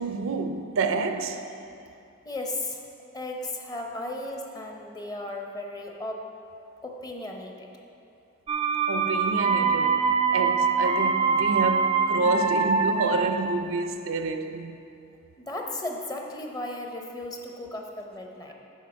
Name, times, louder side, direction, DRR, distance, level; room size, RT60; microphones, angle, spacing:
voice 1, 0.0-1.4 8.9-10.0 10.3-14.8, right 4 dB, 85° right, 0.5 m, -28 dB
voice 2, 2.2-2.8 3.1-6.2 6.8-7.7 15.4-18.5, left 2 dB, 20° left, 0.7 m, -35 dB
sound 1, 8.5-13.6, right 5 dB, 30° right, 0.4 m, -24 dB
8.0 x 4.7 x 6.1 m
head